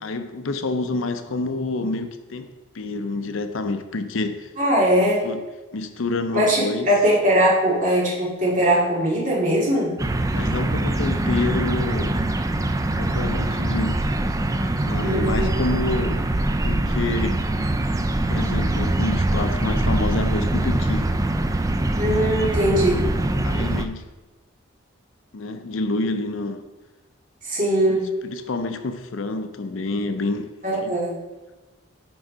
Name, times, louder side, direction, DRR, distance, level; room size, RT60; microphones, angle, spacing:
voice 1, 0.0-4.5 5.2-5.4 5.7-6.9 10.3-12.2 13.0-14.0 14.8-16.3 16.6-17.5 18.3-21.1 22.5-22.6 23.4-24.1 25.3-26.6 27.9-30.5 30.8-31.0, left 3 dB, 75° left, 0.6 m, -28 dB
voice 2, 4.6-5.3 6.3-10.0 15.0-15.5 22.0-23.1 27.4-28.1 30.6-31.2, right 1 dB, 40° right, 2.2 m, -20 dB
sound 1, 10.0-23.9, right 1 dB, 15° right, 0.3 m, -23 dB
6.2 x 5.4 x 5.0 m
head